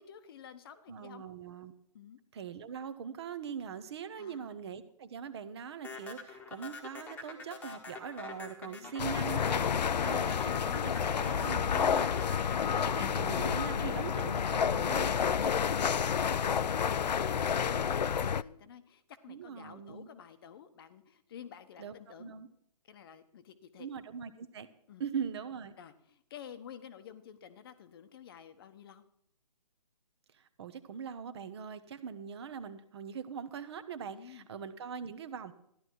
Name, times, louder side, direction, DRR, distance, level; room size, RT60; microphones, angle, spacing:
voice 1, 0.0-1.2 1.9-2.2 4.2-4.6 8.6-9.0 14.9-22.3 22.8-23.9 24.9-25.0 25.8-29.0 34.1-34.5, left 8 dB, 35° left, 11 dB, 0.9 m, -51 dB
voice 2, 0.9-1.7 2.3-12.4 12.7-15.3 19.3-20.1 21.8-21.9 22.2-22.5 23.8-24.7 25.0-25.7 30.3-35.5, right 7 dB, 40° right, 13 dB, 1.0 m, -42 dB
sound 1, 5.8-14.2, left 4 dB, 10° left, 1.3 m, -45 dB
sound 2, 9.0-18.4, left 7 dB, 80° left, 0.5 m, -30 dB
14.0 x 11.0 x 4.6 m, 0.71 s
hypercardioid pair, 150°, 21 cm